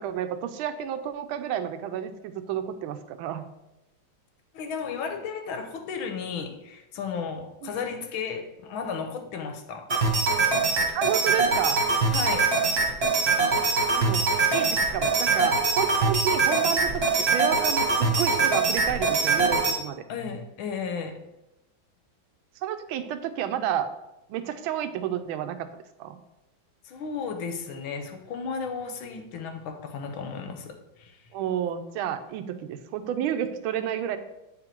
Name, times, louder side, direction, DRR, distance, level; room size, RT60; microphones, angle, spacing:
voice 1, 0.0-3.5 7.6-7.7 10.9-11.8 13.9-20.0 22.6-23.9 24.3-25.7 26.0-26.2 31.3-34.2, right 10 dB, 85° right, 9 dB, 1.4 m, -30 dB
voice 2, 4.5-9.9 12.1-12.5 20.1-21.2 26.8-31.2, left 5 dB, 85° left, 6 dB, 1.6 m, -34 dB
sound 1, 9.9-19.7, right 4 dB, 35° right, 1.2 m, -23 dB
8.4 x 3.8 x 4.4 m, 0.93 s
omnidirectional pair, 2.2 m